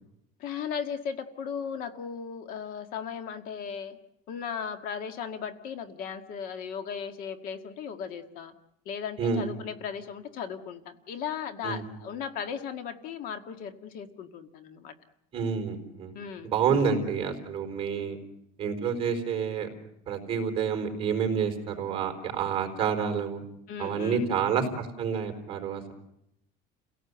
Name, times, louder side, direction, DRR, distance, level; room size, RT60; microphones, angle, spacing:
voice 1, 0.4-4.0 4.3-8.5 8.8-14.9 16.1-16.9 23.7-24.3, left 7 dB, 55° left, 9 dB, 1.8 m, -37 dB
voice 2, 15.3-16.1 16.4-18.2 18.6-19.7 20.1-23.4 23.8-25.9, right 6 dB, 30° right, 3 dB, 4.3 m, -28 dB
29.5 x 17.5 x 8.0 m, 0.80 s
cardioid pair, 155°, 17 cm